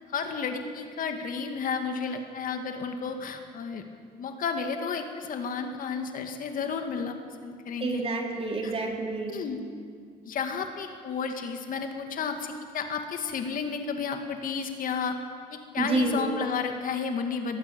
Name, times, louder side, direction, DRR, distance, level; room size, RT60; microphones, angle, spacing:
voice 1, 0.1-3.8 4.2-8.0 8.6-8.7 9.3-9.6 10.2-15.2 15.5-17.6, left 5 dB, 55° left, 5 dB, 2.2 m, -32 dB
voice 2, 7.8-9.4 15.8-16.3, right 3 dB, 35° right, 1 dB, 3.8 m, -28 dB
22.5 x 19.0 x 7.0 m, 2.1 s
cardioid pair, 110°, 17 cm